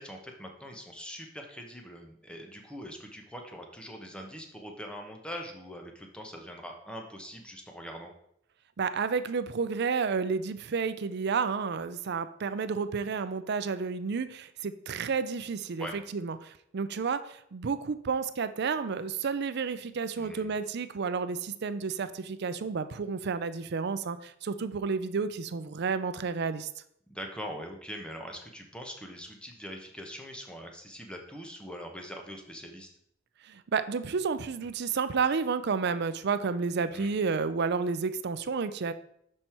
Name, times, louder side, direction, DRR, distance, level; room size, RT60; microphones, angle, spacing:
voice 1, 0.0-8.1 15.8-16.0 20.2-20.6 27.1-32.9 36.9-37.2, equal, 5° left, 3 dB, 1.0 m, -42 dB
voice 2, 8.8-26.7 33.4-38.9, right 5 dB, 60° right, 12 dB, 0.5 m, -31 dB
6.2 x 5.4 x 4.4 m, 0.71 s
head